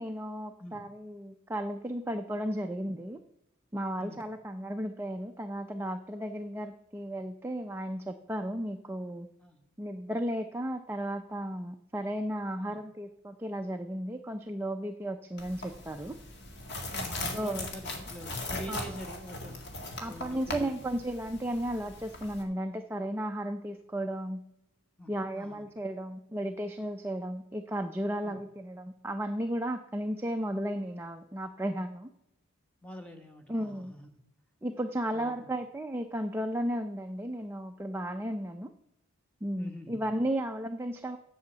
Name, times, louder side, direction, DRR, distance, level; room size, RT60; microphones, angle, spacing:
voice 1, 0.0-3.2 3.7-9.3 9.8-16.2 17.3-17.6 18.7-18.8 20.0-24.4 25.1-32.1 33.5-33.9 34.6-38.7 39.4-41.2, right 1 dB, 10° right, 4 dB, 0.4 m, -34 dB
sound 1, 15.4-22.4, left 2 dB, 50° left, 1.9 m, -39 dB
voice 2, 16.9-19.6 19.9-20.8 25.0-25.6 28.2-28.4 32.8-34.1 35.1-35.4 39.6-40.1, equal, 5° left, 4 dB, 1.2 m, -45 dB
8.4 x 7.0 x 7.8 m, 0.80 s
head